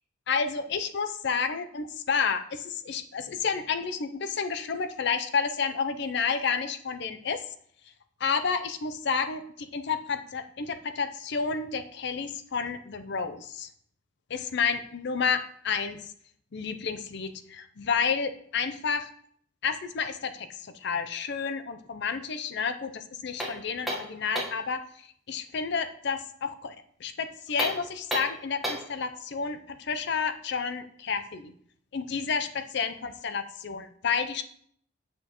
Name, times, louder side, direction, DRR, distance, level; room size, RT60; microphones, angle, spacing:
voice 1, 0.3-7.4 8.2-13.7 14.3-16.1 16.5-19.1 19.6-24.8 25.3-31.5 31.9-34.4, left 5 dB, 60° left, 9 dB, 0.5 m, -30 dB
sound 1, 23.4-24.7 27.5-29.0, right 1 dB, ahead, 1.2 m, -33 dB
7.5 x 6.0 x 3.0 m, 0.62 s
head